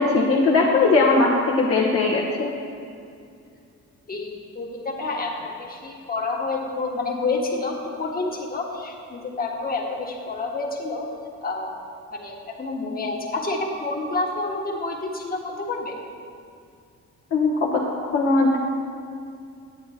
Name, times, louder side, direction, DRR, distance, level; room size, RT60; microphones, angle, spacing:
voice 1, 0.0-2.5 17.3-17.8 18.1-18.6, left 3 dB, 50° left, -4 dB, 1.2 m, -19 dB
voice 2, 4.1-11.1 11.4-11.7 12.1-15.9, left 3 dB, 30° left, -1 dB, 1.6 m, -29 dB
9.6 x 8.4 x 4.3 m, 2.4 s
cardioid pair, 90°, 30 cm